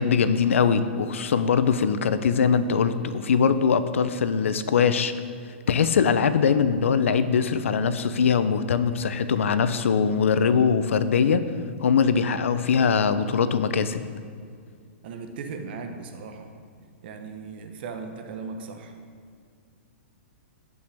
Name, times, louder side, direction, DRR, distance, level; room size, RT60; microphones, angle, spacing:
voice 1, 0.0-5.1 5.7-11.4 11.8-14.0, left 6 dB, 90° left, 12 dB, 0.5 m, -22 dB
voice 2, 15.0-16.5 17.0-18.9, right 4 dB, 50° right, 6 dB, 1.0 m, -37 dB
15.5 x 5.4 x 3.4 m, 2.2 s
hypercardioid pair, 155°, 7 cm